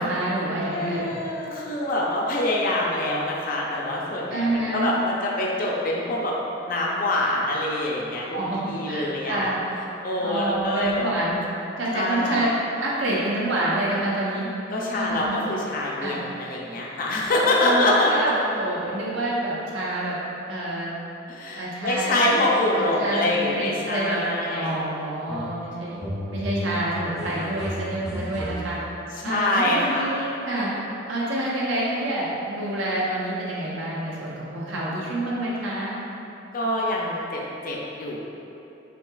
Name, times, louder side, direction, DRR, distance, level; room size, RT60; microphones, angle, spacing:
voice 1, 0.0-1.1 4.3-4.9 8.3-9.6 10.2-11.4 11.8-12.5 12.8-14.5 14.9-15.4 16.0-16.2 17.6-20.2 20.5-20.9 21.6-22.2 22.7-26.0 26.3-28.8 29.2-30.7 31.0-36.0, right 1 dB, 80° right, -6 dB, 0.8 m, -27 dB
voice 2, 0.7-6.4 6.6-8.4 8.7-9.5 10.0-11.1 11.9-12.4 14.7-18.1 21.3-24.8 29.1-30.3 36.5-38.3, left 1 dB, 45° left, -4 dB, 0.5 m, -25 dB
sound 1, 25.3-25.7 25.9-29.0, equal, 5° right, 0.5 m, -33 dB
6.2 x 2.8 x 2.3 m, 2.9 s
head